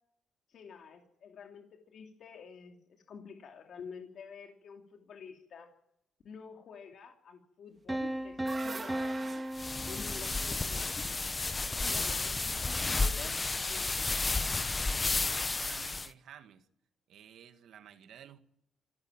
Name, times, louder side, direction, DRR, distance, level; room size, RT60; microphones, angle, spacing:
voice 1, 0.5-5.7 6.2-9.4 9.9-11.1 11.8-14.1, left 6 dB, 65° left, 2.8 m, -49 dB
sound 1, 7.9-10.8, right 1 dB, 10° right, 1.7 m, -36 dB
sound 2, 8.0-12.2, right 4 dB, 30° right, 2.5 m, -46 dB
sound 3, 9.5-16.1, left 3 dB, 25° left, 0.9 m, -32 dB
voice 2, 15.4-16.7 17.1-18.4, right 9 dB, 70° right, 1.9 m, -53 dB
26.5 x 13.5 x 9.0 m
cardioid pair, 90°, 0 cm